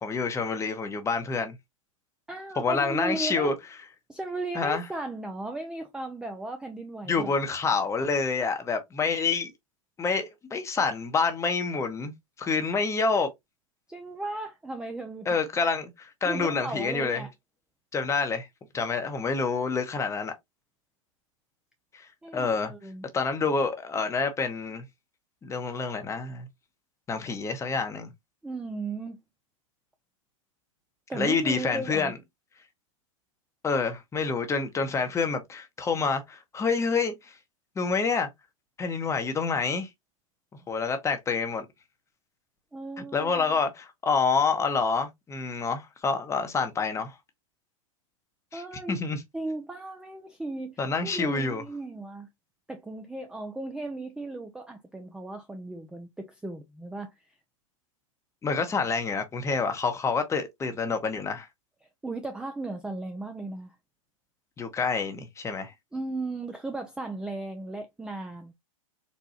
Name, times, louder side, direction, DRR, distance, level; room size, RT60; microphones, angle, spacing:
voice 1, 0.0-1.6 2.6-3.5 4.5-4.8 7.1-9.5 10.0-12.1 12.4-13.3 15.3-17.3 17.9-18.5 18.7-20.3 21.9-22.7 23.1-24.8 25.4-26.5 27.1-28.1 31.1-32.1 33.6-37.4 37.8-38.3 38.8-39.9 40.7-41.7 43.0-47.2 48.5-49.2 50.8-51.6 58.4-61.5 64.6-65.7, left 4 dB, 15° left, 0.8 m, -27 dB
voice 2, 2.3-3.6 4.1-7.4 13.9-15.3 16.2-17.3 22.2-23.1 28.4-29.2 31.1-32.1 42.7-43.6 48.5-49.0 49.3-52.3 52.7-57.1 62.0-63.8 65.9-68.5, right 2 dB, 5° right, 0.4 m, -36 dB
4.2 x 2.2 x 2.8 m
hypercardioid pair, 100°, 17 cm